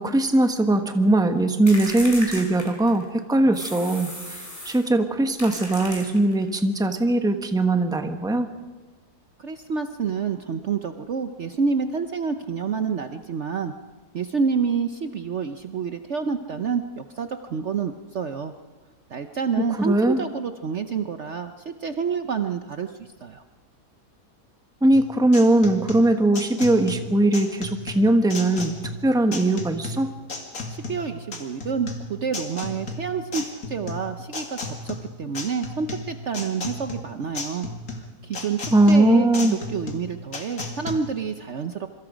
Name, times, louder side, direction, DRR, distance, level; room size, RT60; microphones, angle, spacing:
voice 1, 0.0-4.1 4.6-8.5 19.8-20.2 24.8-28.7 29.0-30.1 38.7-39.6, right 2 dB, 5° right, 6 dB, 1.1 m, -20 dB
sound 1, 1.7-3.1 3.5-4.9 5.4-6.5, left 1 dB, 20° left, 4.1 m, -36 dB
voice 2, 9.4-13.7 14.1-18.5 19.1-23.4 30.7-41.9, right 6 dB, 55° right, 8 dB, 1.0 m, -28 dB
sound 2, 24.9-40.9, left 3 dB, 60° left, 2.7 m, -34 dB
26.5 x 23.5 x 5.1 m, 1.3 s
omnidirectional pair, 1.7 m